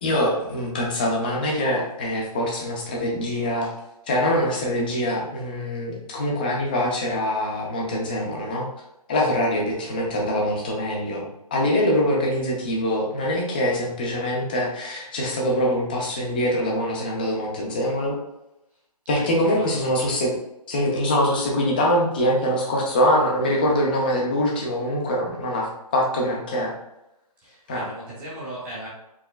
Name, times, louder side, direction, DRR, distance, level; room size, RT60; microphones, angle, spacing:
voice 1, 0.0-3.7 4.1-8.7 9.1-18.2 19.1-20.4 20.7-26.7 27.7-27.9, left 1 dB, 15° left, -2 dB, 0.4 m, -24 dB
voice 2, 19.1-19.9 27.4-28.9, right 1 dB, 10° right, -8 dB, 0.8 m, -37 dB
4.6 x 2.9 x 2.2 m, 0.89 s
hypercardioid pair, 160°, 20 cm